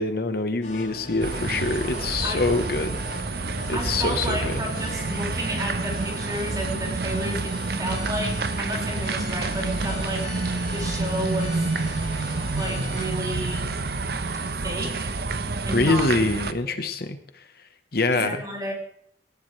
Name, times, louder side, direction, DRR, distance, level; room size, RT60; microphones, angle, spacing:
voice 1, 0.0-3.0 3.7-4.6 15.7-17.5 17.9-18.4, left 3 dB, 55° left, 9 dB, 1.1 m, -25 dB
sound 1, 0.6-13.1, left 2 dB, 40° left, 5.5 m, -39 dB
sound 2, 1.2-16.5, right 3 dB, 55° right, 0.9 m, -28 dB
voice 2, 3.7-11.7 12.5-13.8 14.6-15.1 15.7-16.0 16.7-16.8 18.1-18.7, right 1 dB, 20° right, -2 dB, 5.2 m, -32 dB
18.0 x 16.5 x 3.2 m, 0.65 s
head